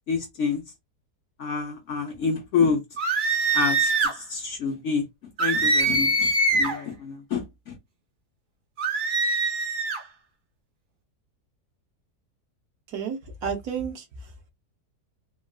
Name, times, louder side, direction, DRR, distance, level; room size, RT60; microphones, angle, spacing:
voice 1, 0.1-0.6 1.4-2.8 3.5-7.8, left 5 dB, 55° left, 0.9 m, -28 dB
sound 1, 3.0-4.2 5.4-6.8 8.8-10.0, right 2 dB, 50° right, 0.6 m, -23 dB
voice 2, 12.9-14.5, right 6 dB, 70° right, 1.3 m, -32 dB
3.7 x 2.3 x 2.3 m
omnidirectional pair, 1.7 m